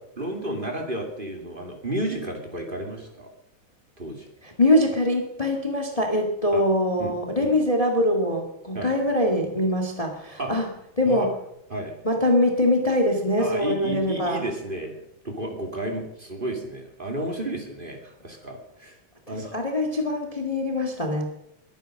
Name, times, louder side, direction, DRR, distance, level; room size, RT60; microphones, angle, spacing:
voice 1, 0.2-3.3 4.0-4.3 6.5-6.6 7.0-7.1 7.4-7.6 8.7-8.9 10.4-10.5 11.1-11.3 11.7-12.0 13.4-15.0 15.2-19.0 19.3-19.5, right 1 dB, 25° right, 2 dB, 2.7 m, -32 dB
voice 2, 4.4-10.7 11.0-11.3 12.0-14.4 19.3-21.2, left 1 dB, 20° left, 2 dB, 2.0 m, -23 dB
22.5 x 9.2 x 6.4 m, 0.80 s
omnidirectional pair, 2.2 m